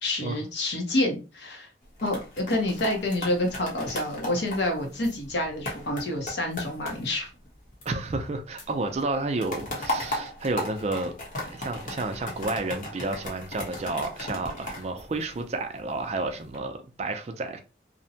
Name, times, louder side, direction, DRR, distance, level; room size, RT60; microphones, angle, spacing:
voice 1, 0.0-1.7 2.0-7.3, left 1 dB, 75° left, 0.8 m, -28 dB
sound 1, 1.8-8.3 8.6-15.8 16.3-16.6, left 1 dB, 45° left, 0.8 m, -37 dB
voice 2, 7.9-11.2 11.5-17.6, right 2 dB, 35° right, 0.4 m, -31 dB
2.6 x 2.1 x 2.7 m
head